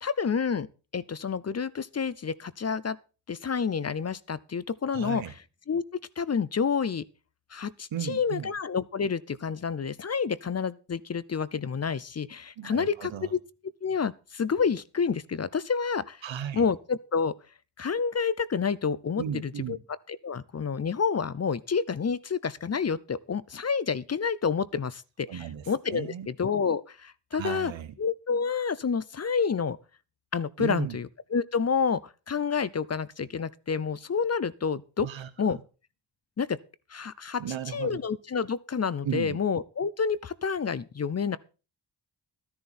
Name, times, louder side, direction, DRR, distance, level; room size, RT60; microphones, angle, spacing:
voice 1, 0.0-0.7 0.9-3.0 3.3-5.2 5.7-7.0 7.5-13.4 13.8-16.2 16.5-17.3 17.8-19.8 20.1-27.7 28.0-29.8 30.3-32.0 32.3-35.1 35.4-35.6 36.4-36.6 36.9-37.4 37.7-41.4, left 6 dB, 35° left, 0.6 m, -29 dB
voice 2, 4.9-5.3 7.9-8.5 12.6-13.3 16.2-16.7 19.2-19.8 25.3-26.3 27.3-27.9 30.6-31.0 35.0-35.6 37.4-38.0 39.0-39.4, right 9 dB, 85° right, 1.3 m, -35 dB
12.5 x 10.5 x 4.3 m
cardioid pair, 70°, 44 cm